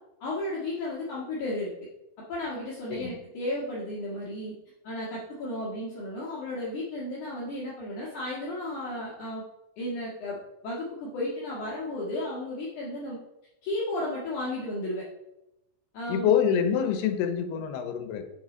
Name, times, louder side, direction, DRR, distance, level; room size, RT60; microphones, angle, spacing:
voice 1, 0.2-1.7 2.3-4.5 4.8-9.4 9.8-10.4 10.6-13.2 13.6-15.1 15.9-16.3, left 1 dB, 55° left, -6 dB, 2.7 m, -33 dB
voice 2, 16.1-18.2, left 8 dB, 80° left, 8 dB, 2.9 m, -26 dB
8.3 x 7.7 x 3.8 m, 0.89 s
omnidirectional pair, 4.7 m